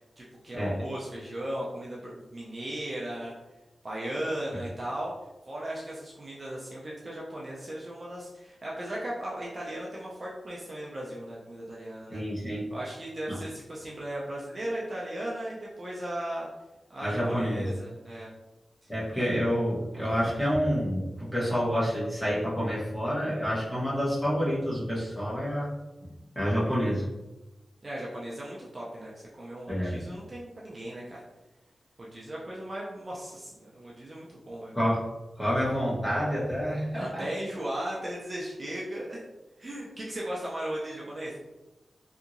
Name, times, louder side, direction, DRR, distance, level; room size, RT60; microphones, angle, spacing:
voice 1, 0.2-3.4 3.8-5.1 5.5-12.2 12.7-16.5 16.9-18.3 18.8-18.9 27.8-31.2 32.0-34.7 36.9-39.2 39.6-41.3, right 1 dB, 30° right, -5 dB, 0.4 m, -37 dB
voice 2, 12.1-12.7 13.3-13.4 17.0-17.7 18.9-25.7 26.3-27.1 29.7-30.0 34.7-35.0 35.4-37.3, equal, 10° left, -7 dB, 0.9 m, -28 dB
2.8 x 2.6 x 2.5 m, 1.0 s
wide cardioid pair, 175°, 0 cm